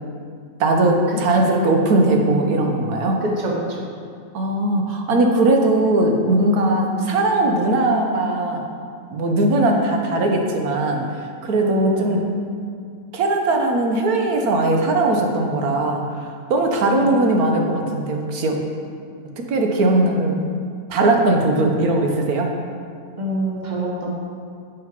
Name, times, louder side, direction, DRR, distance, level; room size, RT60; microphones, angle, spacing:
voice 1, 0.6-3.2 4.3-8.6 9.1-11.1 11.4-12.3 13.1-16.0 16.5-18.6 19.4-20.4 20.9-22.5, right 2 dB, 65° right, 2 dB, 1.4 m, -19 dB
voice 2, 3.2-3.8 11.6-12.2 23.2-24.1, right 1 dB, 30° right, -2 dB, 1.2 m, -26 dB
7.7 x 6.3 x 5.3 m, 2.2 s
omnidirectional pair, 1.7 m